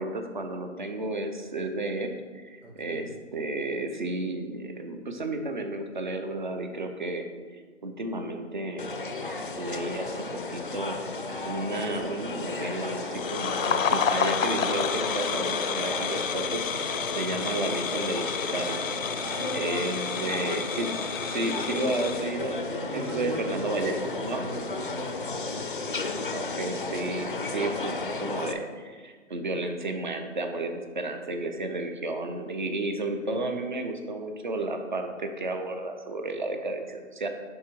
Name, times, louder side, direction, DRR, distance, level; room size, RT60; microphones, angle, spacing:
voice 1, 0.0-7.3 7.5-8.9 9.6-11.0 11.4-19.0 19.5-20.9 21.2-24.5 26.3-37.3, right 2 dB, 40° right, 5 dB, 0.7 m, -32 dB
voice 2, 2.6-3.1 17.1-17.3 19.2-20.6 22.8-23.7 24.3-26.4, right 2 dB, 70° right, -2 dB, 2.2 m, -41 dB
sound 1, 8.8-28.5, left 3 dB, 45° left, 0.5 m, -33 dB
sound 2, 13.1-22.2, left 7 dB, 90° left, 0.7 m, -31 dB
11.0 x 3.8 x 4.5 m, 1.5 s
hypercardioid pair, 180°, 38 cm